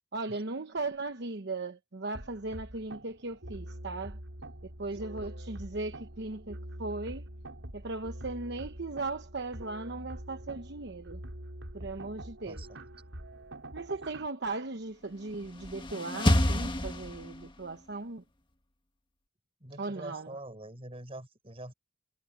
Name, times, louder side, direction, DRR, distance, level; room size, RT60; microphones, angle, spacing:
voice 1, 0.1-4.2 4.6-7.3 7.7-11.2 11.7-12.6 13.7-18.2 19.8-20.4, right 3 dB, 60° right, 1.0 m, -37 dB
sound 1, 2.1-14.3, right 1 dB, 90° right, 4.5 m, -45 dB
voice 2, 12.5-12.8 19.6-21.7, right 1 dB, 30° right, 6.4 m, -45 dB
sound 2, 15.3-17.7, left 1 dB, 25° left, 1.5 m, -28 dB
head